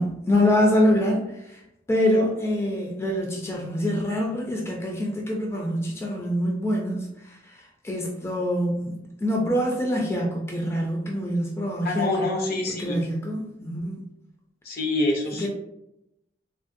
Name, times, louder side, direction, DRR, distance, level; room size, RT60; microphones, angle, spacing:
voice 1, 0.0-1.6 1.9-12.3 12.8-14.0 15.4-15.5, equal, 15° left, -1 dB, 0.4 m, -25 dB
voice 2, 11.8-13.0 14.6-15.5, left 2 dB, 55° left, 0 dB, 0.6 m, -26 dB
3.4 x 2.1 x 2.5 m, 0.84 s
head